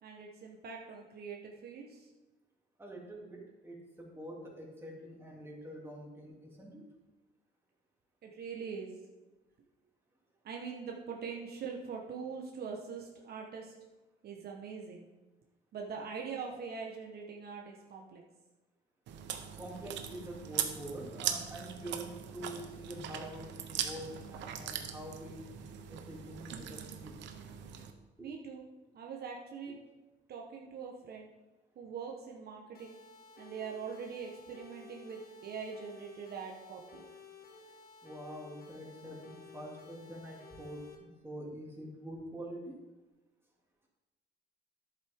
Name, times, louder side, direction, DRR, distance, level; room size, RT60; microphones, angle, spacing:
voice 1, 0.0-2.1 8.2-8.9 10.4-13.7 14.2-15.0 15.7-18.2 28.2-28.6 28.9-29.8 30.3-31.3 31.7-33.0 33.4-37.0, right 6 dB, 60° right, 0 dB, 1.2 m, -43 dB
voice 2, 2.8-6.8 19.6-25.5 25.9-27.1 28.2-28.3 38.0-42.8, right 1 dB, 15° right, -3 dB, 2.8 m, -46 dB
Chewing mastication, 19.1-27.9, right 9 dB, 85° right, 0.9 m, -40 dB
sound 1, 32.7-40.9, left 4 dB, 55° left, 1.7 m, -54 dB
11.0 x 7.8 x 3.7 m, 1.1 s
cardioid pair, 95°, 18 cm